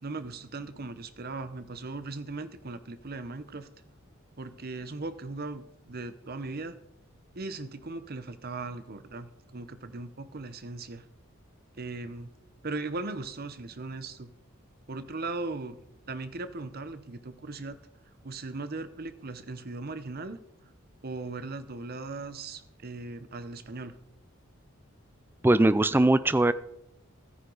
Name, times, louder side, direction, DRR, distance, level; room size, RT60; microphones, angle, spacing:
voice 1, 0.0-3.7 4.4-6.8 7.3-11.1 11.8-12.3 12.6-14.3 14.9-15.8 16.1-17.8 18.2-20.4 21.0-23.9, right 3 dB, 45° right, 12 dB, 0.8 m, -38 dB
voice 2, 25.4-26.5, right 2 dB, 10° right, 14 dB, 0.4 m, -21 dB
14.0 x 9.5 x 4.0 m, 0.78 s
head